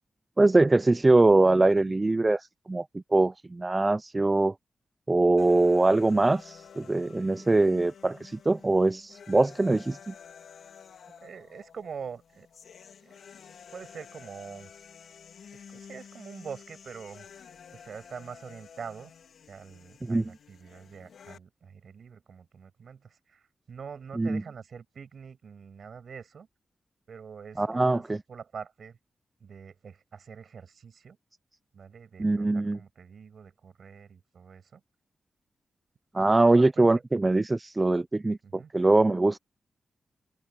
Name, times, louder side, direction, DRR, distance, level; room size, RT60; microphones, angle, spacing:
voice 1, 0.4-2.9 3.1-4.5 5.1-10.1 20.0-20.2 24.2-24.4 27.6-28.2 32.2-32.8 36.1-39.4, right 2 dB, 25° right, 0.4 m, -23 dB
sound 1, 5.4-21.4, left 7 dB, 85° left, 3.7 m, -51 dB
voice 2, 11.2-12.5 13.0-13.2 13.7-14.7 15.7-19.1 19.5-26.5 27.1-28.0 28.3-29.0 29.4-31.2 31.7-34.8 36.2-36.9 38.4-38.7, right 6 dB, 70° right, 7.8 m, -45 dB
cardioid pair, 75°, 0 cm